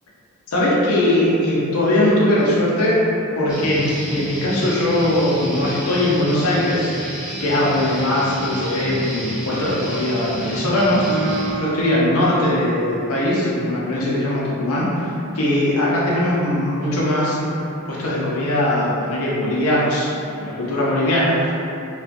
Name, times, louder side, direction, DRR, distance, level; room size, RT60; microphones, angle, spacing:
voice 1, 0.5-3.1 3.3-17.5 17.9-20.1 20.4-21.5, left 1 dB, 80° left, -6 dB, 0.6 m, -20 dB
Guitar, 3.5-11.5, equal, 5° right, 0.6 m, -30 dB
Guitar 2, 11.1-14.7, right 3 dB, 50° right, 0.3 m, -32 dB
2.4 x 2.3 x 2.4 m, 2.7 s
head